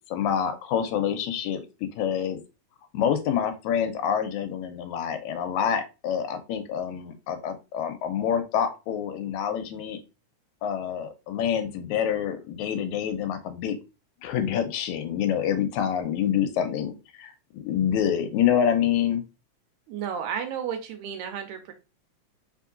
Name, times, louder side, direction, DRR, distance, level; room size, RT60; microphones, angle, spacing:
voice 1, 0.1-2.4 2.9-10.0 10.6-13.8 14.2-19.2, left 8 dB, 80° left, 8 dB, 1.9 m, -27 dB
voice 2, 19.9-21.7, right 8 dB, 85° right, 6 dB, 2.1 m, -32 dB
4.2 x 3.6 x 2.4 m, 0.29 s
omnidirectional pair, 3.4 m